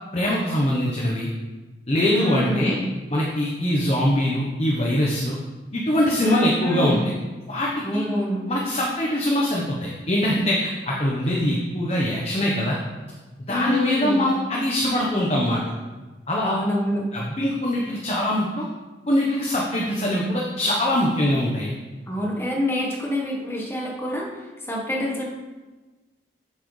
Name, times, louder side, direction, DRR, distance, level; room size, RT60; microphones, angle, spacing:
voice 1, 0.1-1.3 1.9-2.8 3.1-5.4 5.7-7.0 7.5-8.0 8.5-12.8 13.5-15.6 16.3-16.5 17.1-18.7 19.1-21.7, left 1 dB, 35° left, -3 dB, 0.9 m, -23 dB
voice 2, 2.1-2.8 6.2-7.1 7.8-8.4 13.5-14.3 16.4-17.1 22.1-24.4 24.7-25.3, equal, 15° left, -2 dB, 1.2 m, -26 dB
7.6 x 7.5 x 3.2 m, 1.2 s
head